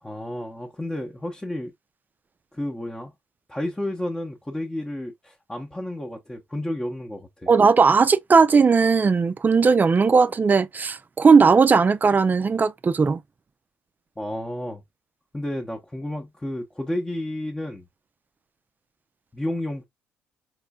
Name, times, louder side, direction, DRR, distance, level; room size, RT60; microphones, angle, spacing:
voice 1, 0.0-1.7 2.5-3.1 3.5-7.5 14.2-14.8 15.3-17.9 19.3-19.8, left 1 dB, 10° left, 0.8 m, -31 dB
voice 2, 7.5-13.2, right 5 dB, 30° right, 0.4 m, -17 dB
4.2 x 3.1 x 2.2 m
hypercardioid pair, 50°, 6 cm